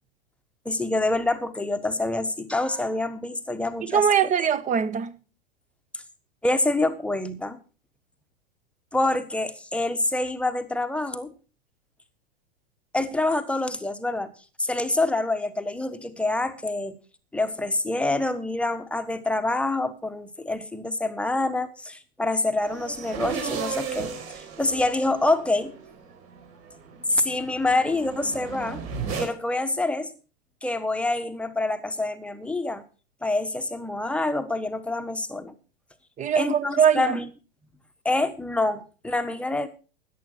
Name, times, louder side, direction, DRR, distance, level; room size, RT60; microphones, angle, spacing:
voice 1, 0.6-4.1 6.4-7.6 8.9-11.3 12.9-14.3 14.6-17.0 17.3-25.7 27.1-28.8 29.2-30.1 30.6-32.8 33.2-35.5 36.3-37.3 38.0-39.7, left 2 dB, 5° left, 1.3 m, -26 dB
voice 2, 3.9-5.1 36.2-37.2, right 8 dB, 25° right, 1.1 m, -22 dB
sound 1, 22.6-29.3, right 6 dB, 45° right, 4.3 m, -35 dB
13.5 x 10.0 x 4.6 m
figure-of-eight pair, 100°, 32 cm